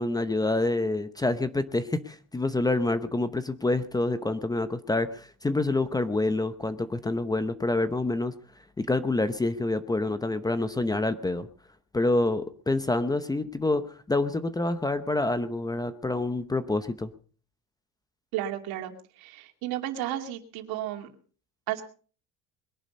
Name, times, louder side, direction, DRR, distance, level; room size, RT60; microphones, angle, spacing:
voice 1, 0.0-8.3 8.8-11.5 11.9-17.1, left 2 dB, 10° left, 12 dB, 0.8 m, -27 dB
voice 2, 18.3-21.1 21.7-21.8, right 12 dB, 75° right, 6 dB, 2.7 m, -33 dB
21.5 x 11.0 x 5.3 m, 0.41 s
cardioid pair, 150°, 37 cm